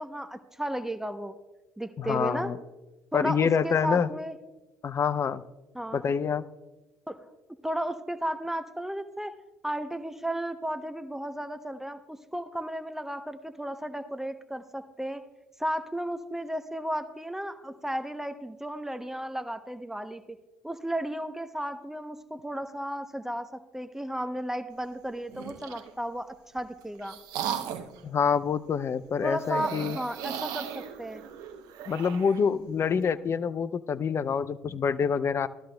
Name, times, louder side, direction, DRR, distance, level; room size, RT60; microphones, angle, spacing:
voice 1, 0.0-1.4 1.8-2.5 3.1-4.4 5.7-6.0 7.1-7.2 7.6-9.3 9.6-15.2 15.6-20.4 20.6-23.5 23.7-27.2 29.2-31.2, equal, 5° right, 8 dB, 0.7 m, -34 dB
voice 2, 2.0-2.6 3.1-4.1 4.8-5.4 5.9-6.4 28.0-30.0 31.9-35.5, left 6 dB, 40° left, 15 dB, 0.5 m, -26 dB
sound 1, 25.3-25.9 26.6-28.0 29.4-32.4, right 8 dB, 65° right, 0.8 m, -36 dB
17.0 x 12.5 x 2.2 m, 1.1 s
hypercardioid pair, 55°, 7 cm